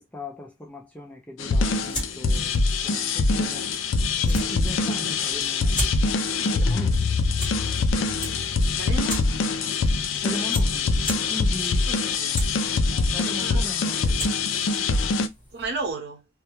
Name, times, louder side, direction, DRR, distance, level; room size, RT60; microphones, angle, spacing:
voice 1, 0.0-3.7 4.3-5.9 6.4-7.2 9.8-10.9 11.3-11.9 12.9-14.3, left 1 dB, 5° left, 0.3 m, -38 dB
sound 1, 1.4-15.3, left 3 dB, 75° left, 0.4 m, -24 dB
sound 2, 1.6-15.9, left 1 dB, 25° left, 1.2 m, -38 dB
voice 2, 8.8-9.3 11.8-12.4 13.3-13.7 15.5-16.3, right 3 dB, 55° right, 0.8 m, -33 dB
2.2 x 2.1 x 2.9 m
head